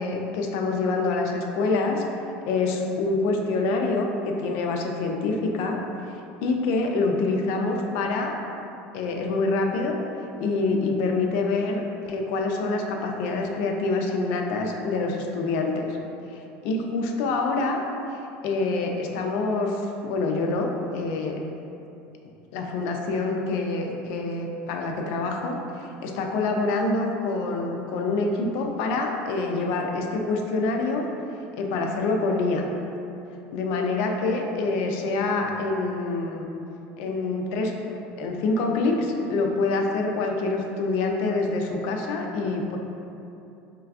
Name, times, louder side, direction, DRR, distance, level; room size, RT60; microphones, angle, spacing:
voice 1, 0.0-2.0 2.4-5.8 6.1-8.3 8.9-10.0 10.4-16.0 16.3-17.8 18.4-21.4 22.5-31.1 31.6-32.7 33.5-36.5 37.0-37.7 38.2-42.8, left 3 dB, 65° left, 2 dB, 0.4 m, -26 dB
4.5 x 3.3 x 2.4 m, 2.8 s
cardioid pair, 160°, 4 cm